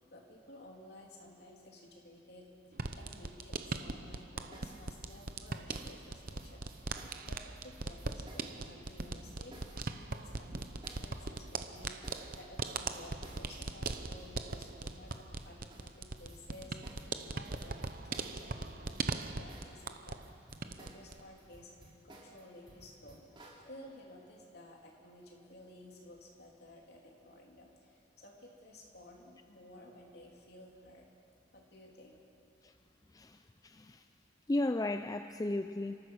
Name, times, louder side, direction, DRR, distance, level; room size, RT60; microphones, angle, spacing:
voice 1, 0.1-21.7 22.0-31.1 31.5-32.2, left 1 dB, 55° left, -1 dB, 3.2 m, -55 dB
sound 1, 2.7-20.3 20.5-21.2, right 3 dB, 50° right, 0.8 m, -40 dB
sound 2, 4.5-19.8 20.1-23.6, right 1 dB, 25° right, 3.2 m, -57 dB
voice 2, 33.6-34.0 34.5-36.0, left 2 dB, 20° left, 8 dB, 0.4 m, -34 dB
30.0 x 13.5 x 6.5 m, 2.6 s
head